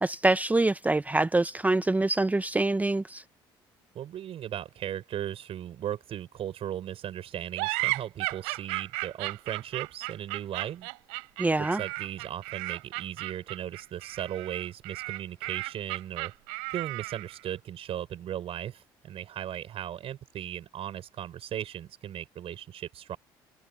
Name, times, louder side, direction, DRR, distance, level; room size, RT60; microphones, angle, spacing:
voice 1, 0.0-3.2 11.4-11.8, right 2 dB, 15° right, 0.7 m, -25 dB
voice 2, 3.9-10.9 11.6-16.3 16.7-23.2, right 11 dB, 60° right, 6.3 m, -37 dB
sound 1, 7.6-17.4, right 32 dB, 80° right, 3.6 m, -34 dB
hypercardioid pair, 60°, 11 cm